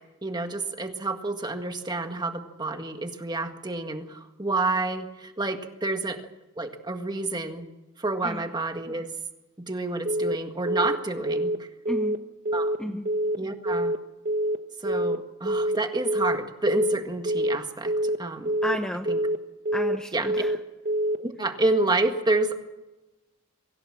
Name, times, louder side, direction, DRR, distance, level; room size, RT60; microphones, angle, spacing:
voice 1, 0.2-6.2 6.6-7.7 8.0-9.1 9.6-11.7 12.5-13.0 13.4-13.9 14.8-18.6 19.1-19.2 20.1-20.5 21.2-22.6, right 2 dB, 20° right, 6 dB, 1.7 m, -29 dB
Telephone, 10.1-10.4 10.7-11.0 11.3-11.6 11.9-12.2 12.5-12.8 13.1-13.4 13.7-14.0 14.3-14.6 14.9-15.2 15.5-15.8 16.1-16.4 16.7-17.0 17.3-17.6 17.9-18.2 18.5-18.8 19.1-19.4 19.7-20.0 20.3-20.6 20.9-21.2, right 1 dB, 40° right, 1.1 m, -25 dB
voice 2, 11.9-12.2 12.8-13.1 18.6-19.1 19.7-20.5, equal, 5° left, 4 dB, 0.9 m, -32 dB
24.0 x 15.5 x 7.5 m, 1.0 s
head